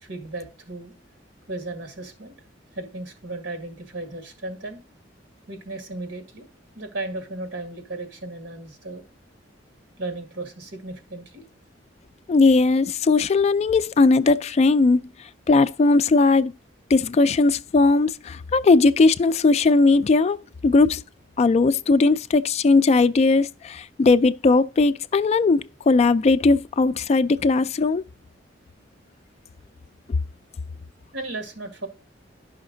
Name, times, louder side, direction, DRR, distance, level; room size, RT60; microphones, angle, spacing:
voice 1, 0.0-0.9 1.5-2.3 2.7-4.8 5.5-6.5 6.8-9.0 10.0-11.4 31.1-31.9, right 2 dB, 80° right, 1.9 m, -35 dB
voice 2, 12.3-15.0 15.5-16.5 16.9-21.0 21.4-28.0, left 3 dB, 35° left, 0.3 m, -18 dB
10.5 x 5.7 x 3.8 m
head